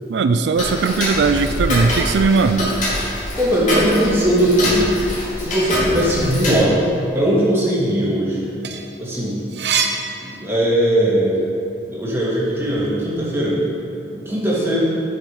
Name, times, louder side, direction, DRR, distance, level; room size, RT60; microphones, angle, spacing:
voice 1, 0.1-2.7, right 4 dB, 90° right, 9 dB, 0.4 m, -18 dB
Tick-tock, 0.6-6.6, left 1 dB, 45° left, 2.4 m, -24 dB
voice 2, 3.4-4.9 5.4-6.7 7.1-8.4 9.0-9.4 10.2-11.4 11.9-13.6 14.1-14.8, right 1 dB, 15° right, -7 dB, 2.2 m, -19 dB
sound 1, 8.6-11.0 11.5-12.9, right 6 dB, 70° right, 0.7 m, -26 dB
10.0 x 6.5 x 4.8 m, 2.6 s
head